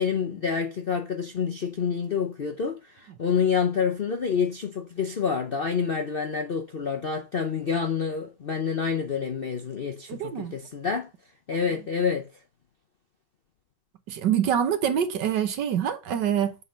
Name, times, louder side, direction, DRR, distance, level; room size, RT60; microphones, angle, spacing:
voice 1, 0.0-11.1 11.5-12.3, left 6 dB, 55° left, 0.6 m, -28 dB
voice 2, 10.1-10.5 14.1-16.6, right 9 dB, 75° right, 1.6 m, -25 dB
7.9 x 3.8 x 5.5 m
omnidirectional pair, 1.9 m